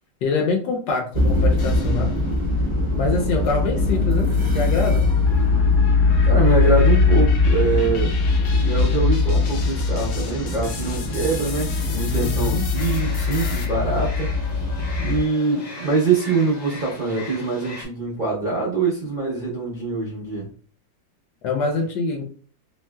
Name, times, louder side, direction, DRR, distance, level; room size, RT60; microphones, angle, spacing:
voice 1, 0.2-2.2 3.0-5.1 12.2-12.7 21.4-22.3, left 3 dB, 70° left, 2 dB, 1.1 m, -25 dB
sound 1, 1.1-15.2, left 3 dB, 30° right, 0.6 m, -20 dB
sound 2, 1.6-2.4 2.9-13.6, left 5 dB, 90° left, 0.7 m, -38 dB
voice 2, 6.2-8.1 8.6-14.3 15.0-20.5, right 4 dB, 75° right, -5 dB, 0.4 m, -24 dB
sound 3, 12.7-17.8, left 3 dB, 45° left, 1.1 m, -38 dB
3.1 x 2.7 x 2.2 m, 0.43 s
omnidirectional pair, 2.0 m